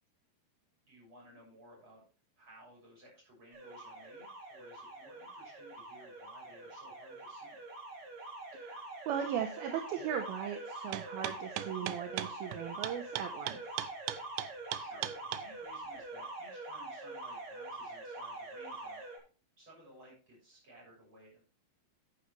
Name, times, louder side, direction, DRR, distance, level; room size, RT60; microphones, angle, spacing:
voice 1, 0.9-2.0 2.4-7.6 14.8-19.0 19.6-21.4, right 1 dB, 30° right, -3 dB, 7.5 m, -57 dB
Alarm, 3.5-19.2, right 2 dB, 50° right, 4.7 m, -45 dB
voice 2, 8.5-13.8, right 9 dB, 70° right, 5 dB, 2.6 m, -38 dB
sound 1, 10.9-15.4, right 14 dB, 85° right, 2.9 m, -38 dB
10.5 x 10.0 x 3.2 m, 0.35 s
omnidirectional pair, 4.9 m